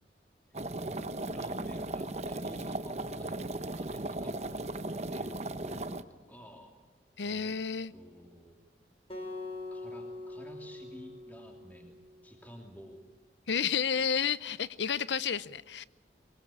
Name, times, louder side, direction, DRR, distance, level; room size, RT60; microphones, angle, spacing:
sound 1, 0.5-6.0, right 2 dB, 40° right, 0.9 m, -37 dB
voice 1, 0.8-6.7 7.2-7.6 7.9-8.6 9.7-13.0, equal, 10° left, 2 dB, 2.7 m, -51 dB
voice 2, 7.2-7.9 13.5-15.8, left 7 dB, 90° left, 18 dB, 0.7 m, -31 dB
Acoustic guitar, 9.1-12.3, left 2 dB, 35° left, 4.3 m, -43 dB
23.0 x 22.0 x 8.6 m, 1.2 s
head